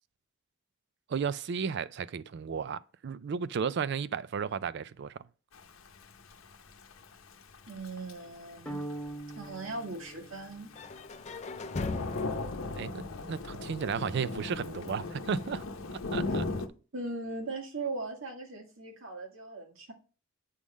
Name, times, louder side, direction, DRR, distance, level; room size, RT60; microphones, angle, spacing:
voice 1, 1.1-5.3 12.7-15.6 16.1-16.4, right 6 dB, 55° right, 0.4 m, -34 dB
Thunder / Rain, 5.5-16.7, left 3 dB, 75° left, 0.8 m, -39 dB
voice 2, 7.7-8.8 9.4-10.7 16.3-16.4 16.9-19.9, right 3 dB, 70° right, 1.8 m, -39 dB
sound 1, 8.7-11.0, right 1 dB, 5° left, 0.9 m, -42 dB
sound 2, 10.8-14.7, left 3 dB, 35° left, 0.4 m, -40 dB
8.3 x 3.6 x 6.2 m
head